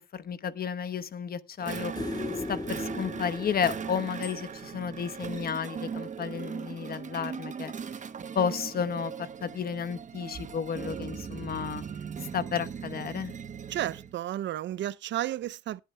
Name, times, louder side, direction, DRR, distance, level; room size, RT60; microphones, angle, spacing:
voice 1, 0.1-2.1 2.5-7.7 8.3-11.8 12.3-13.3, left 7 dB, 50° left, 1.0 m, -32 dB
sound 1, 1.6-14.1, right 6 dB, 40° right, 0.9 m, -39 dB
sound 2, 2.0-5.2 7.8-7.9, left 3 dB, 20° left, 1.5 m, -38 dB
Bicycle bell, 4.2-4.8, left 10 dB, 85° left, 2.9 m, -48 dB
voice 2, 13.7-15.8, right 13 dB, 65° right, 0.5 m, -32 dB
19.0 x 8.5 x 2.2 m
cardioid pair, 90°, 20 cm